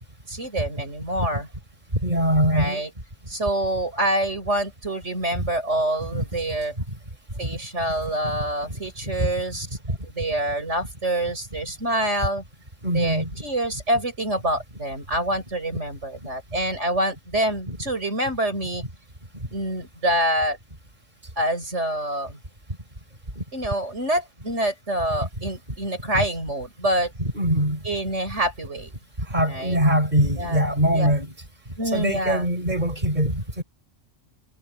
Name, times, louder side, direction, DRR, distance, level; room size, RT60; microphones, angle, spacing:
voice 1, 0.3-1.5 2.5-2.9 3.3-6.7 7.4-9.7 10.1-12.4 12.9-18.8 19.5-20.6 21.4-22.4 23.5-27.1 27.8-28.9 29.5-29.8 30.4-30.7 30.9-31.1 31.8-32.5, right 1 dB, 65° right, 6.8 m, -26 dB
voice 2, 2.0-2.8 5.4-5.5 6.1-6.2 7.5-7.6 8.7-8.8 9.2-9.3 12.8-13.3 17.7-17.8 23.4-23.5 26.1-26.2 27.2-27.8 29.3-31.3 31.9-33.6, equal, 35° right, 6.3 m, -22 dB
omnidirectional pair, 1.3 m